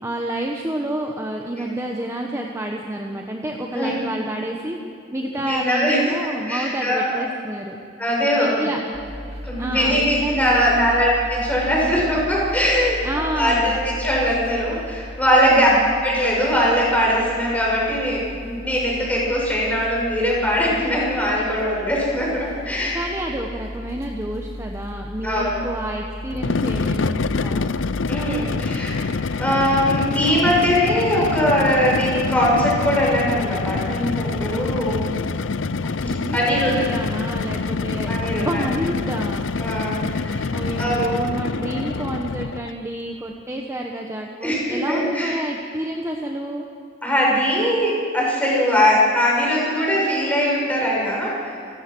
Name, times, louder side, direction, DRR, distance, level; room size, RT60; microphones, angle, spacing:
voice 1, 0.0-4.8 5.1-7.8 8.4-8.8 9.6-11.1 13.0-13.9 15.5-16.0 22.9-27.7 36.0-39.5 40.5-46.6, right 1 dB, 15° right, 1 dB, 1.3 m, -29 dB
voice 2, 5.3-6.0 6.4-7.2 8.0-8.7 9.4-15.7 16.0-23.0 25.2-25.6 28.1-29.0 29.4-35.1 36.3-36.9 38.1-38.6 39.6-40.5 40.8-41.0 44.4-45.3 47.0-51.6, equal, 10° left, -4 dB, 6.7 m, -21 dB
sound 1, 8.9-28.8, left 1 dB, 35° right, 2.6 m, -36 dB
sound 2, 26.3-42.7, left 4 dB, 85° left, 0.6 m, -26 dB
30.0 x 14.5 x 6.3 m, 2.6 s
head